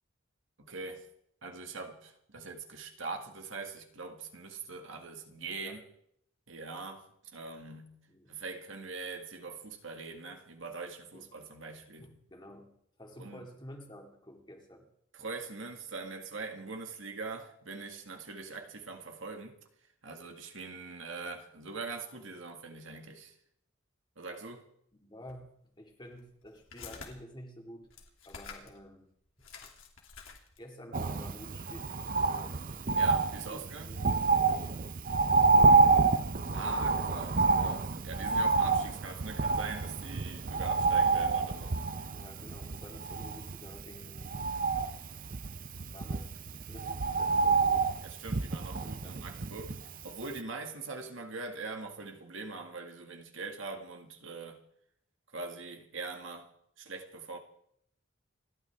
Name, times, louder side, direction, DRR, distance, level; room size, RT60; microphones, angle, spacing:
voice 1, 0.6-1.1 1.4-5.8 6.5-8.0 8.3-12.1 13.2-13.4 15.1-19.6 20.0-23.3 24.2-24.6 32.9-34.0 36.5-41.8 48.0-49.8 50.0-54.6 55.3-56.5 56.8-57.4, right 3 dB, 70° right, 2.1 m, -42 dB
voice 2, 12.0-12.7 13.0-14.8 24.9-27.9 28.2-29.1 29.4-29.7 30.6-32.6 33.5-34.0 35.3-36.2 37.1-37.5 42.1-44.4 45.9-46.3 46.7-47.9 48.8-49.2, equal, 20° left, 2.5 m, -50 dB
sound 1, 25.3-25.4 26.1-27.1 27.8-28.8 29.1-29.2 29.4-30.7, left 5 dB, 80° left, 2.8 m, -48 dB
Bird, 30.9-50.0 50.4-50.5, right 4 dB, 40° right, 0.6 m, -28 dB
29.0 x 12.0 x 3.6 m
head